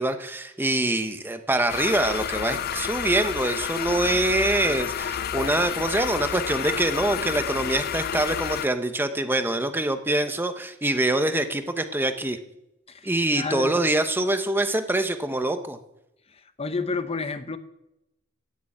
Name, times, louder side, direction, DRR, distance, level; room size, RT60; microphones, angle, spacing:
voice 1, 0.0-12.4 13.0-15.8, right 1 dB, 10° right, 8 dB, 1.0 m, -25 dB
sound 1, 1.7-8.7, left 9 dB, 50° left, 0.4 m, -30 dB
voice 2, 12.9-13.8 16.3-17.6, left 4 dB, 30° left, 11 dB, 0.8 m, -31 dB
15.5 x 6.9 x 8.7 m, 0.88 s
head